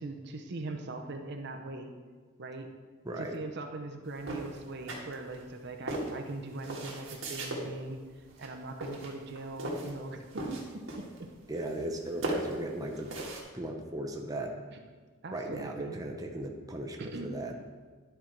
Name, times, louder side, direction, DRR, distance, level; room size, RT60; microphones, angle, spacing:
voice 1, 0.0-1.9 2.4-2.7 3.2-8.0 8.4-11.1 14.7-14.8 15.2-16.0 17.0-17.4, right 2 dB, 55° right, 5 dB, 0.7 m, -40 dB
voice 2, 3.0-3.4 11.5-13.1 13.5-14.5 15.3-17.5, right 1 dB, 20° right, 1 dB, 0.7 m, -37 dB
sound 1, 4.2-5.5 5.9-7.6 8.3-8.5 8.8-10.0 10.3-11.2 11.5-13.4, right 1 dB, 75° right, 1.6 m, -37 dB
11.0 x 4.5 x 4.5 m, 1.5 s
head